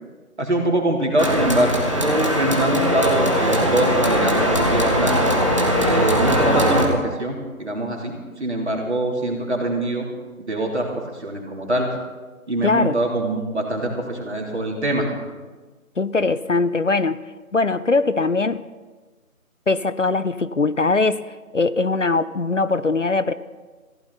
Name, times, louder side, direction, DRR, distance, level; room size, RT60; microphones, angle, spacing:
voice 1, 0.4-5.2 5.8-10.1 10.4-11.9 12.5-15.1, right 1 dB, 50° right, 0 dB, 3.3 m, -23 dB
sound 1, 1.2-6.8, equal, 20° right, 1.3 m, -20 dB
voice 2, 12.6-13.0 16.0-17.2 17.5-18.6 19.7-23.3, left 3 dB, 60° left, 15 dB, 0.6 m, -21 dB
18.5 x 15.5 x 4.1 m, 1.3 s
figure-of-eight pair, 170°, 43 cm